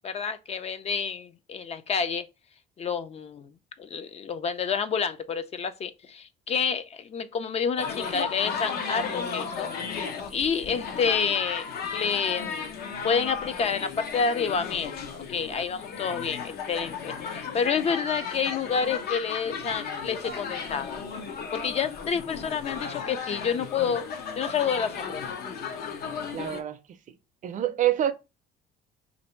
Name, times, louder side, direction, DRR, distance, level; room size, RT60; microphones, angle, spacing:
voice 1, 0.0-2.3 2.8-3.5 3.8-9.7 10.3-11.7 11.9-12.8 13.0-15.0 15.3-21.0 21.5-24.0 24.4-25.2, left 6 dB, 40° left, 0.4 m, -29 dB
sound 1, 7.8-26.6, left 6 dB, 65° left, 0.7 m, -35 dB
voice 2, 26.3-26.8 27.4-28.1, right 12 dB, 50° right, 0.5 m, -26 dB
2.9 x 2.6 x 4.3 m
cardioid pair, 110°, 17 cm